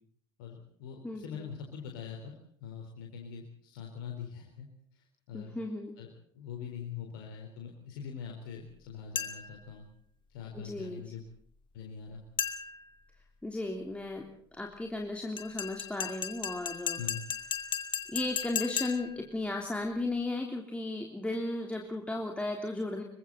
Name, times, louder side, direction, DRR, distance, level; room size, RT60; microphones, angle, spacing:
voice 1, 0.4-2.3 2.6-5.5 6.0-6.1 6.3-9.8 10.3-11.2 11.7-12.2 17.0-17.2, left 7 dB, 65° left, 1 dB, 4.1 m, -43 dB
voice 2, 1.0-1.5 5.3-5.9 10.5-11.0 13.4-14.2 14.6-17.0 18.1-23.0, left 2 dB, 10° left, 1 dB, 3.4 m, -35 dB
sound 1, 9.2-9.6 12.4-12.9 15.4-19.2, left 8 dB, 40° left, 2.6 m, -36 dB
26.5 x 24.0 x 4.1 m, 0.62 s
figure-of-eight pair, 60°, 13 cm